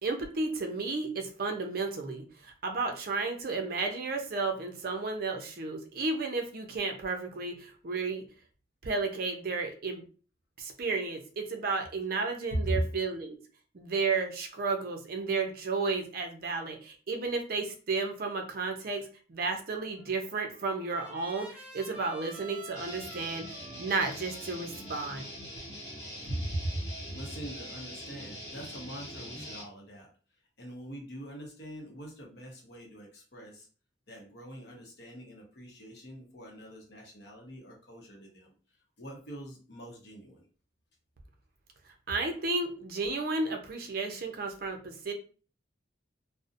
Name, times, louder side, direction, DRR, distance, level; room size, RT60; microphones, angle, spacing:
voice 1, 0.0-8.2 8.8-10.0 10.6-13.4 13.7-23.5 23.8-25.3 42.1-45.1, right 3 dB, 50° right, 4 dB, 0.5 m, -33 dB
Trumpet, 20.0-26.1, right 1 dB, 5° right, 0.6 m, -50 dB
Guitar, 22.8-29.6, equal, 15° left, 1.1 m, -43 dB
voice 2, 26.2-30.1 30.6-33.7 34.1-38.5 39.0-40.4, right 1 dB, 60° left, 0 dB, 0.7 m, -40 dB
2.6 x 2.0 x 2.5 m, 0.38 s
head